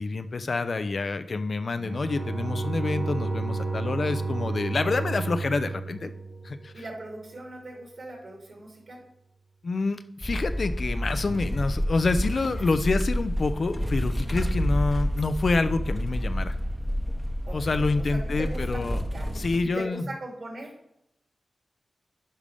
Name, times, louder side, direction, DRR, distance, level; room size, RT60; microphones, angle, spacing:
voice 1, 0.0-6.1 6.4-6.7 9.6-16.6 17.5-19.0 19.3-20.0, left 3 dB, 55° left, 10 dB, 0.6 m, -27 dB
Bowed string instrument, 1.8-7.0, right 4 dB, 85° right, 1.4 m, -32 dB
sound 1, 2.1-8.0, equal, 75° left, 2.6 m, -41 dB
voice 2, 6.7-9.0 17.5-19.3 19.6-20.7, right 2 dB, 60° right, 0 dB, 2.9 m, -40 dB
sound 2, 10.2-19.6, equal, 5° left, 0.9 m, -29 dB
10.0 x 5.3 x 3.5 m, 0.80 s
cardioid pair, 70°, 0 cm